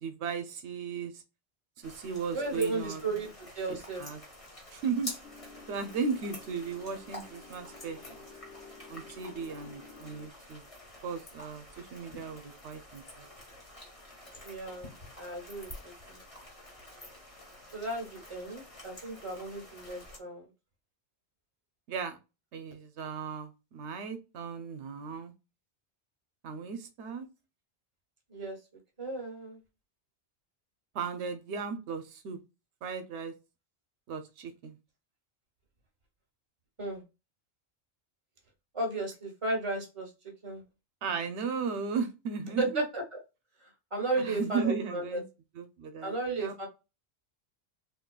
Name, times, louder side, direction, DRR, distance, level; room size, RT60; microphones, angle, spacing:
voice 1, 0.0-1.1 1.8-3.0 3.7-4.2 4.7-5.1 5.7-8.2 8.9-10.6 11.0-11.6 11.9-13.3 21.9-22.2 22.5-25.3 26.4-27.3 30.9-32.4 32.8-33.3 34.1-34.7 41.0-42.8 44.3-45.2 45.6-46.1 46.4-46.7, right 5 dB, 85° right, 9 dB, 0.9 m, -36 dB
sound 1, 1.8-20.2, left 1 dB, 30° left, 1.4 m, -48 dB
voice 2, 2.3-3.3 3.5-4.0 14.4-16.2 17.7-20.5 28.3-28.6 29.0-29.6 36.8-37.0 38.7-40.1 40.4-40.6 42.6-43.2 43.9-45.2 46.0-46.7, right 2 dB, 30° right, 2 dB, 1.1 m, -34 dB
sound 2, 5.2-10.3, left 4 dB, 65° left, 0.8 m, -52 dB
3.7 x 2.6 x 2.3 m, 0.27 s
omnidirectional pair, 1.1 m